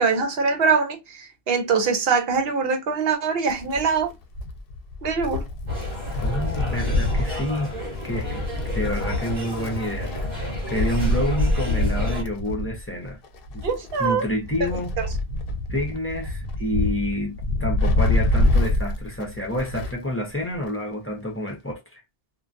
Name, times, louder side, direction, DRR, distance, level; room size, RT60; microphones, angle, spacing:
voice 1, 0.0-4.1 5.0-5.4 13.6-14.2 15.0-15.1, right 5 dB, 70° right, 0.9 m, -23 dB
Wind, 3.5-20.1 20.4-20.5 21.5-21.6, left 2 dB, 70° left, 0.7 m, -26 dB
sound 1, 5.7-12.2, equal, 45° right, 1.1 m, -34 dB
voice 2, 6.2-7.7 8.0-8.4 8.7-10.1 10.7-13.2 13.5-13.7 14.0-14.9 15.7-22.0, equal, 15° left, 0.6 m, -28 dB
2.2 x 2.2 x 2.5 m
omnidirectional pair, 1.1 m